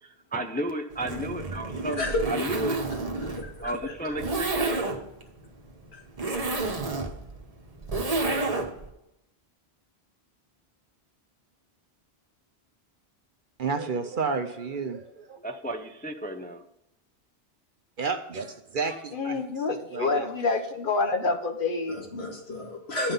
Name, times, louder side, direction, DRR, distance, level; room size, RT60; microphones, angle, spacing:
voice 1, 0.0-2.9 3.6-4.9 15.4-16.6, right 1 dB, 10° left, 5 dB, 0.4 m, -33 dB
Zipper (clothing), 0.9-8.9, right 3 dB, 35° right, 1.1 m, -30 dB
voice 2, 3.2-4.1 5.9-6.0 21.9-23.1, left 2 dB, 75° left, 0 dB, 2.1 m, -32 dB
voice 3, 13.6-15.6 18.0-20.3, right 4 dB, 55° right, 7 dB, 0.8 m, -32 dB
voice 4, 19.1-22.0, left 3 dB, 55° left, 6 dB, 1.1 m, -27 dB
10.0 x 5.8 x 5.4 m, 0.84 s
omnidirectional pair, 1.1 m